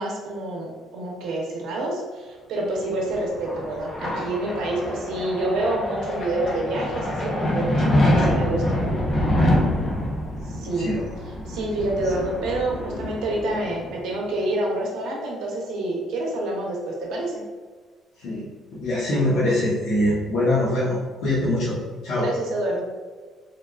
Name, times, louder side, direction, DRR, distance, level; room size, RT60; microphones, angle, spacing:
voice 1, 0.0-7.8 8.1-8.6 10.4-10.9 11.5-17.4 22.2-22.8, right 1 dB, 80° right, -1 dB, 0.7 m, -27 dB
sound 1, 2.8-14.1, left 1 dB, 25° left, 0.5 m, -25 dB
voice 2, 10.8-11.1 11.8-11.9 18.2-21.0 21.2-21.8 22.0-22.3, left 1 dB, 80° left, -10 dB, 0.9 m, -23 dB
3.4 x 2.4 x 2.3 m, 1.4 s
cardioid pair, 175°, 0 cm